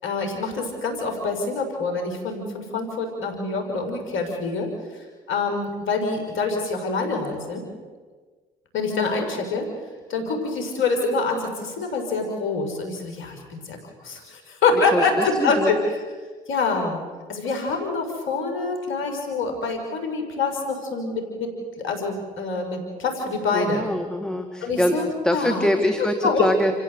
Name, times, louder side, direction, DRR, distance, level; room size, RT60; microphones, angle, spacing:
voice 1, 0.0-4.7 5.3-7.6 8.7-9.7 10.1-16.0 16.5-17.0 17.3-23.8 24.6-25.7 26.0-26.4, left 4 dB, 70° left, 4 dB, 6.0 m, -26 dB
voice 2, 14.9-15.7 23.5-24.9 25.2-26.7, left 1 dB, 5° left, 4 dB, 2.7 m, -24 dB
30.0 x 16.0 x 8.3 m, 1.4 s
hypercardioid pair, 50°, 21 cm